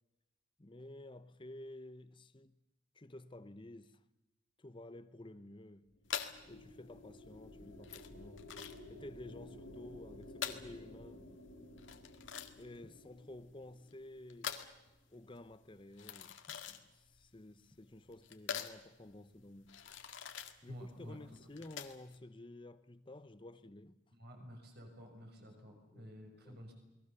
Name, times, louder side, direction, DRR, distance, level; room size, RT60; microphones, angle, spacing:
voice 1, 0.6-2.5 2.9-4.0 4.6-5.9 6.5-8.6 8.9-11.2 12.6-14.6 15.1-19.8 20.6-24.0 25.4-26.2 26.4-26.6, left 1 dB, 25° left, 0.8 m, -52 dB
sound 1, 5.9-14.4, left 1 dB, 85° left, 3.9 m, -54 dB
sound 2, 6.0-22.2, left 8 dB, 70° left, 1.9 m, -46 dB
voice 2, 20.7-21.2 24.1-26.7, equal, 55° right, 6.3 m, -51 dB
28.5 x 21.0 x 6.8 m
head